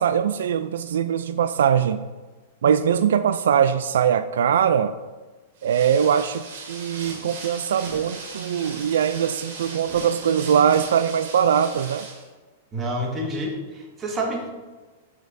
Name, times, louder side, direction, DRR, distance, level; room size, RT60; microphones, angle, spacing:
voice 1, 0.0-2.0 2.6-4.9 5.6-12.1, right 8 dB, 85° right, 12 dB, 0.3 m, -21 dB
sound 1, 5.6-12.3, right 4 dB, 60° right, 2.4 m, -38 dB
voice 2, 12.7-14.5, right 1 dB, 20° right, 0 dB, 1.6 m, -28 dB
12.0 x 6.3 x 2.6 m, 1.3 s
hypercardioid pair, 145°, 0 cm